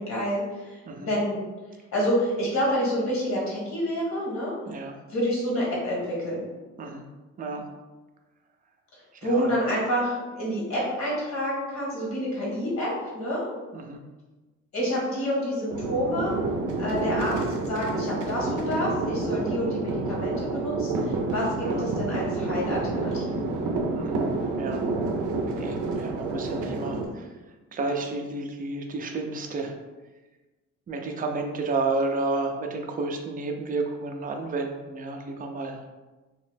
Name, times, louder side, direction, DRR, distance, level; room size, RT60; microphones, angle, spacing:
voice 1, 0.0-1.4 1.9-4.5 5.1-6.4 8.9-13.4 14.7-16.3 16.8-23.3, equal, 65° left, -5 dB, 1.3 m, -28 dB
voice 2, 4.7-5.0 6.8-7.0 7.4-7.7 9.3-9.5 13.7-14.0 21.6-21.9 23.9-24.3 24.6-24.8 25.6-27.3 27.7-29.7 30.9-35.8, right 3 dB, 30° right, 3 dB, 0.4 m, -31 dB
sound 1, 15.7-27.1, right 3 dB, 85° right, 0.5 m, -29 dB
2.9 x 2.0 x 3.2 m, 1.2 s
cardioid pair, 90°, 30 cm